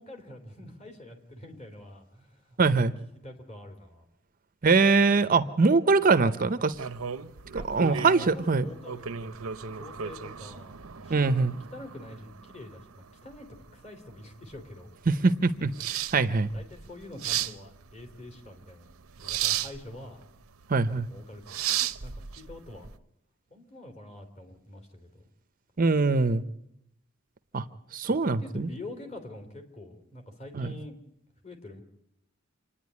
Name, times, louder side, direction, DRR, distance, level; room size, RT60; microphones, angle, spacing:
voice 1, 0.0-2.9 3.2-4.1 7.6-11.3 11.7-13.5 13.7-15.0 16.4-18.9 19.2-20.2 21.1-21.7 22.0-22.9 23.5-25.2 28.2-31.0 31.4-31.8, left 1 dB, 35° left, 5 dB, 3.3 m, -45 dB
voice 2, 2.6-2.9 4.6-6.7 7.7-8.7 11.1-11.6 15.1-15.7 16.1-16.5 20.7-21.1 25.8-26.4 27.5-27.6 27.9-28.7 30.5-30.7, right 4 dB, 40° right, 12 dB, 0.7 m, -22 dB
sound 1, 6.7-22.9, right 10 dB, 85° right, 0.8 m, -35 dB
27.5 x 10.0 x 9.6 m, 0.78 s
head